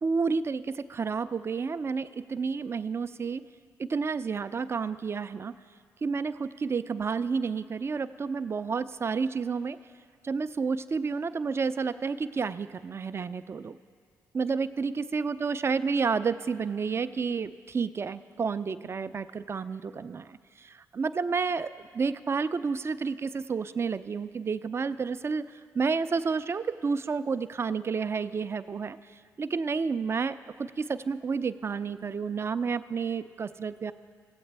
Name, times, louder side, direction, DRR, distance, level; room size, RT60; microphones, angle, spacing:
voice 1, 0.0-3.4 3.8-5.5 6.0-9.8 10.2-13.8 14.3-25.4 25.7-29.0 29.4-33.9, right 5 dB, 35° right, 13 dB, 0.4 m, -30 dB
16.0 x 7.8 x 3.3 m, 2.1 s
supercardioid pair, 50°, 7 cm